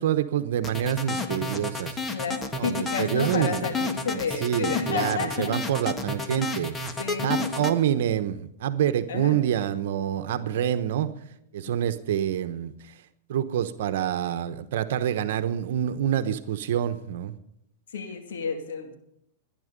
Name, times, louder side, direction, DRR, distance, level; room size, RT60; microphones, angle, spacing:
voice 1, 0.0-2.0 2.6-3.7 4.1-6.7 7.2-11.1 11.5-12.7 13.3-17.3, right 10 dB, 70° right, 11 dB, 1.0 m, -27 dB
sound 1, 0.6-7.7, left 3 dB, 15° left, 1.5 m, -31 dB
voice 2, 1.1-1.5 2.1-5.6 6.4-6.5 7.0-7.7 9.1-9.4 10.3-10.6 11.7-11.8 17.9-18.9, left 6 dB, 85° left, 5 dB, 2.4 m, -31 dB
18.5 x 10.5 x 5.3 m, 0.76 s
hypercardioid pair, 125°, 0 cm